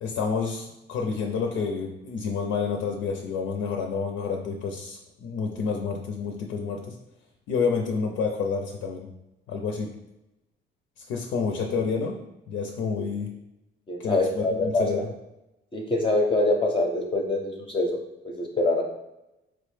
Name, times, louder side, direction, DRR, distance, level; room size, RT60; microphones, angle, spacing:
voice 1, 0.0-7.0 7.5-9.1 9.5-9.9 11.0-12.2 12.5-13.3 14.0-15.1, left 5 dB, 85° left, 3 dB, 0.4 m, -29 dB
voice 2, 13.9-15.0 15.7-18.0 18.2-18.8, left 2 dB, 25° left, 0 dB, 0.5 m, -25 dB
4.3 x 2.1 x 3.1 m, 0.94 s
cardioid pair, 90°, 20 cm